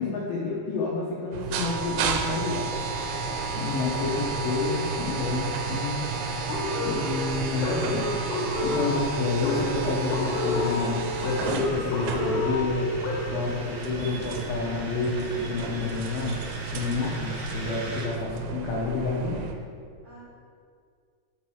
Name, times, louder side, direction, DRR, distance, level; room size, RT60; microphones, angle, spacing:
voice 1, 0.0-2.7 3.5-6.0 6.8-13.0 13.3-16.4 16.7-19.5, left 3 dB, 80° left, -4 dB, 2.1 m, -29 dB
sound 1, 1.3-19.5, right 4 dB, 90° right, 2.9 m, -32 dB
sound 2, 2.7-18.1, right 2 dB, 70° right, 1.9 m, -42 dB
voice 2, 3.4-4.4 13.6-14.0 17.4-17.7 19.7-20.2, right 2 dB, 45° right, -10 dB, 2.3 m, -50 dB
sound 3, 6.5-13.5, left 2 dB, 65° left, 2.8 m, -30 dB
6.4 x 4.2 x 6.2 m, 2.2 s
omnidirectional pair, 5.3 m